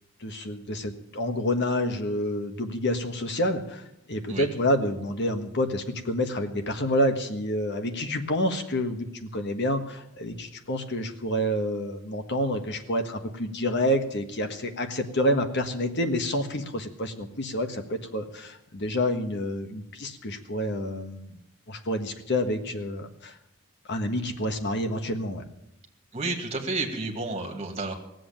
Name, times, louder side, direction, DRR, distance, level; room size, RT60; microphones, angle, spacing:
voice 1, 0.2-21.3 21.7-23.3 23.9-25.4, left 1 dB, 50° left, 6 dB, 1.5 m, -28 dB
voice 2, 26.1-27.9, right 3 dB, 30° right, 2 dB, 2.3 m, -31 dB
17.0 x 7.9 x 9.0 m, 0.83 s
head